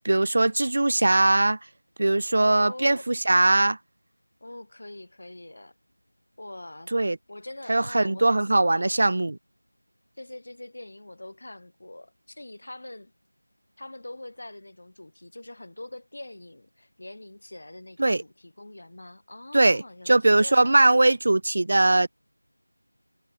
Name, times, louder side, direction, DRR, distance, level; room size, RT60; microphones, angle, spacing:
voice 1, 0.0-1.6 2.0-3.8 6.9-7.2 7.7-9.4 18.0-18.2 19.5-22.1, right 2 dB, 35° right, 0.4 m, -21 dB
voice 2, 2.4-3.1 4.4-5.7 6.4-6.9 7.3-8.9 10.2-13.1 13.8-21.1, left 1 dB, 45° left, 4.4 m, -43 dB
figure-of-eight pair, 175°, 0 cm